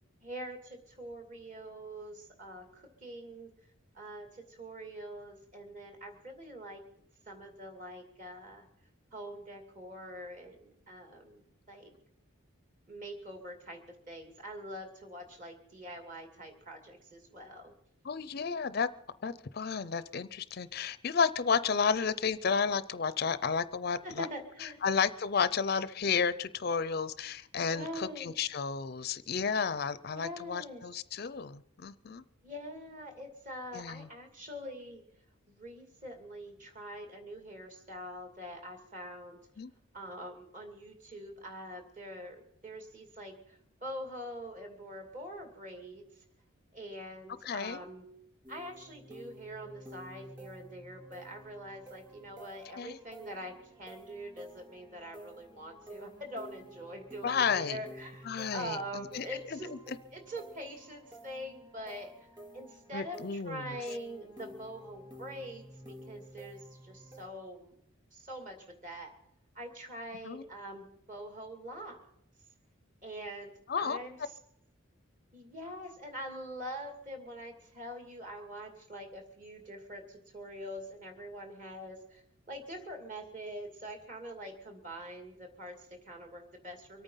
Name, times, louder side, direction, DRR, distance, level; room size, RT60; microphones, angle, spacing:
voice 1, 0.2-3.5 3.9-6.8 7.3-8.7 9.1-11.9 12.9-17.7 24.0-24.8 27.7-28.3 30.1-30.8 32.4-35.0 35.5-39.4 39.9-46.0 46.7-48.1 48.5-59.7 60.1-62.3 62.5-67.8 68.1-69.1 69.5-72.0 73.0-74.3 75.3-82.2 82.5-87.0, equal, 35° right, 4 dB, 2.6 m, -44 dB
voice 2, 18.0-18.9 19.2-24.3 24.6-32.2 33.7-34.1 39.6-39.7 47.4-47.8 52.7-53.0 57.2-57.8 58.2-60.0 62.9-63.8 70.2-70.4 73.7-74.0, left 6 dB, 45° left, 15 dB, 0.5 m, -32 dB
sound 1, 48.4-67.3, equal, 20° right, 3.7 m, -52 dB
24.5 x 9.0 x 5.6 m, 0.72 s
head